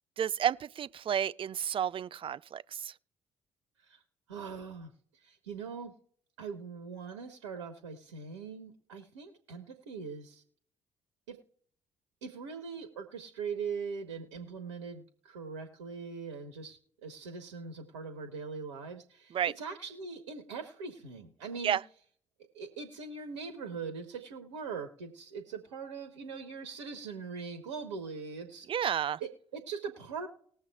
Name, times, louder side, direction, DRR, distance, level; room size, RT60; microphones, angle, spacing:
voice 1, 0.2-2.9 19.3-19.5 21.6-21.8 28.7-29.2, right 9 dB, 35° right, 0.4 m, -31 dB
voice 2, 4.3-4.9 5.2-5.9 6.4-10.4 11.3-11.4 12.2-21.8 22.5-28.7 29.2-30.3, right 5 dB, 75° right, 0.9 m, -41 dB
20.0 x 7.1 x 2.3 m
figure-of-eight pair, 40°, 15 cm